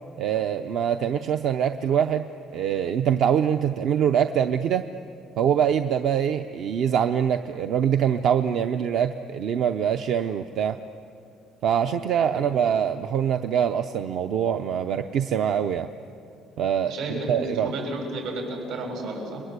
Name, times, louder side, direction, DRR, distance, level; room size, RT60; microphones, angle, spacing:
voice 1, 0.2-2.2 2.5-4.9 5.4-10.8 11.6-15.9 16.6-17.7, right 8 dB, 55° right, 8 dB, 0.7 m, -24 dB
voice 2, 16.9-19.4, right 1 dB, 80° right, 1 dB, 7.4 m, -32 dB
30.0 x 22.0 x 8.2 m, 2.5 s
cardioid pair, 175°, 0 cm